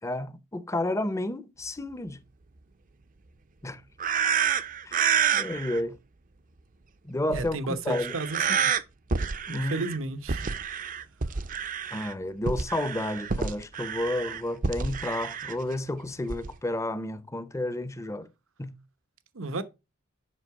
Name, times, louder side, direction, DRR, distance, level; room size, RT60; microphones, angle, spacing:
voice 1, 0.0-2.2 3.6-3.8 4.9-5.0 5.3-6.0 7.0-7.6 7.9-8.1 9.5-9.8 11.9-18.3 18.6-18.8, left 1 dB, 15° left, 0.6 m, -31 dB
sound 1, 4.0-5.8 7.3-7.5 7.9-8.8 9.1-10.0 10.3-12.1 12.5-15.6 16.3-16.5, right 7 dB, 40° right, 0.6 m, -28 dB
voice 2, 7.3-8.7 9.5-10.5 19.3-19.6, right 2 dB, 80° right, 0.9 m, -33 dB
7.7 x 5.8 x 4.7 m
head